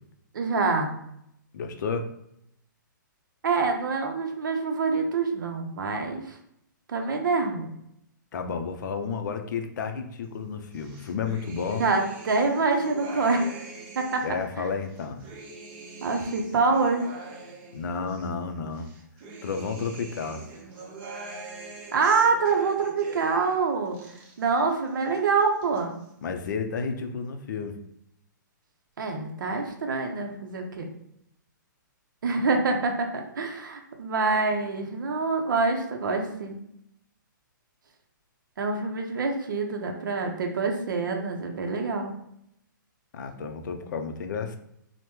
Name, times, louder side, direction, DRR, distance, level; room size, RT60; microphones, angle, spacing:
voice 1, 0.3-0.9 3.4-6.4 6.9-7.7 11.7-13.5 14.0-14.2 16.0-17.1 21.9-24.0 24.4-26.0 29.0-30.9 32.2-36.6 38.6-42.1, right 4 dB, 75° right, 3 dB, 0.6 m, -26 dB
voice 2, 1.5-2.1 8.3-11.8 14.2-15.3 17.7-18.9 19.4-20.5 26.2-27.8 43.1-44.6, left 5 dB, 65° left, 6 dB, 0.4 m, -31 dB
sound 1, 10.7-14.4 14.8-18.3 18.7-23.6 23.8-24.7 25.0-25.8, right 2 dB, 35° right, 0.7 m, -43 dB
3.0 x 2.0 x 3.3 m, 0.77 s
hypercardioid pair, 140°, 11 cm